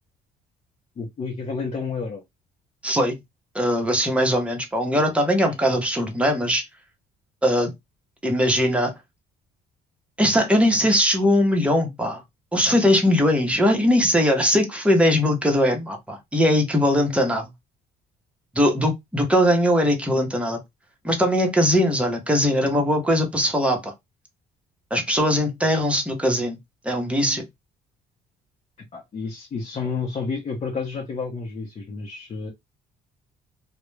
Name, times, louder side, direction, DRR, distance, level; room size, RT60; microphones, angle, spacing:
voice 1, 1.0-2.2 4.9-5.0 5.4-5.6 28.9-32.5, left 4 dB, 40° left, 0.7 m, -30 dB
voice 2, 2.8-3.2 3.5-6.6 7.4-7.7 8.2-8.9 10.2-12.2 12.5-17.5 18.5-20.6 21.0-23.9 24.9-26.6 26.8-27.4, equal, 5° right, 0.8 m, -20 dB
2.3 x 2.1 x 3.1 m
cardioid pair, 110°, 17 cm